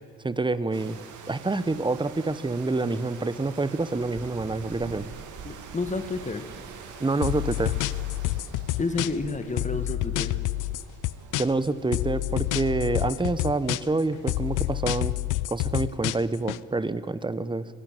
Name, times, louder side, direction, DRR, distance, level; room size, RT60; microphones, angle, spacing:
voice 1, 0.2-1.0 1.3-5.0 7.0-7.8 11.4-15.2 15.5-17.7, right 3 dB, 15° right, 16 dB, 1.0 m, -27 dB
sound 1, 0.7-14.8, right 6 dB, 80° right, 2.5 m, -44 dB
voice 2, 5.4-6.4 8.8-10.3, left 3 dB, 25° left, 9 dB, 1.7 m, -30 dB
sound 2, 7.2-9.3 9.6-11.7 11.9-14.0 14.3-16.6, left 18 dB, 85° left, 0.6 m, -28 dB
22.0 x 15.5 x 9.0 m, 2.3 s
cardioid pair, 90°, 30 cm